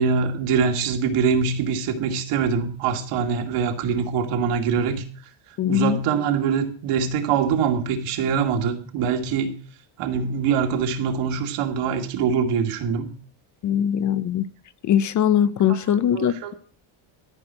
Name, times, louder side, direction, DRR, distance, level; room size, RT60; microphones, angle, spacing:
voice 1, 0.0-5.0 5.7-9.5 10.0-13.1 15.7-16.5, right 6 dB, 85° right, 2.4 m, -24 dB
voice 2, 5.6-6.0 13.6-14.4 14.8-16.5, left 9 dB, 40° left, 0.4 m, -21 dB
13.5 x 6.0 x 7.6 m
cardioid pair, 175°, 50 cm